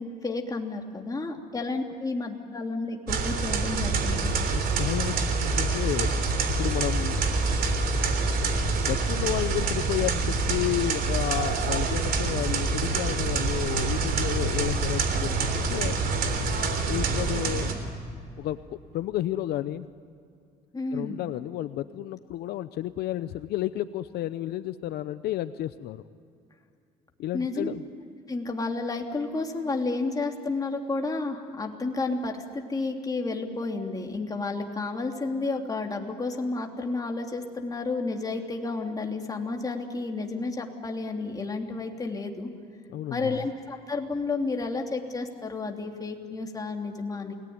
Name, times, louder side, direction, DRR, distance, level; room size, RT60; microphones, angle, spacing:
voice 1, 0.0-4.4 20.7-21.2 27.3-27.7 28.3-42.5 43.1-47.3, left 3 dB, 20° left, 2 dB, 3.1 m, -31 dB
sound 1, 3.1-17.8, right 3 dB, 65° right, 3.7 m, -26 dB
voice 2, 4.5-6.2 6.6-7.2 8.8-15.9 16.9-17.7 18.4-19.9 20.9-26.0 27.2-27.8 42.9-43.4, left 13 dB, 75° left, 12 dB, 0.8 m, -31 dB
29.0 x 19.5 x 9.6 m, 2.4 s
cardioid pair, 110°, 17 cm